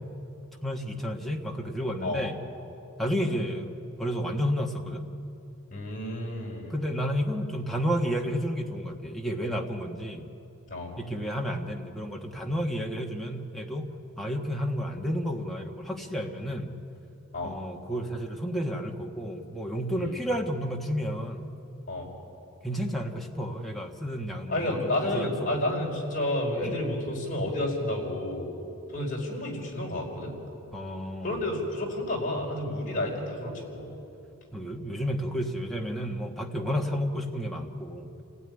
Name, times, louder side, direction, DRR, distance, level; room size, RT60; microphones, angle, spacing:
voice 1, 0.6-2.3 3.0-5.1 6.7-10.3 11.0-13.9 14.2-16.7 17.4-21.5 22.6-25.6 26.6-26.8 30.7-31.4 34.5-38.2, equal, ahead, 0 dB, 1.5 m, -31 dB
voice 2, 5.7-6.7 10.7-10.9 17.3-17.5 20.0-20.1 21.9-22.1 24.5-28.5 28.9-30.3 31.2-33.9, left 1 dB, 35° left, -2 dB, 5.0 m, -30 dB
28.0 x 16.5 x 9.9 m, 2.8 s
head